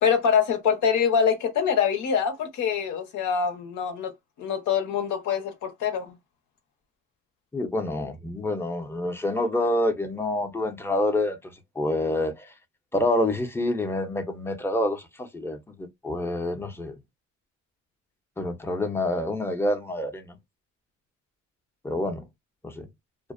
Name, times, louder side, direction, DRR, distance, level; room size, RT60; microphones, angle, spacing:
voice 1, 0.0-4.1 4.4-6.1, left 7 dB, 75° left, 0.8 m, -24 dB
voice 2, 7.5-12.5 12.9-17.0 18.4-20.4 21.8-22.3 22.6-22.9, left 1 dB, 10° left, 0.6 m, -27 dB
2.5 x 2.1 x 2.4 m
cardioid pair, 90°, 30 cm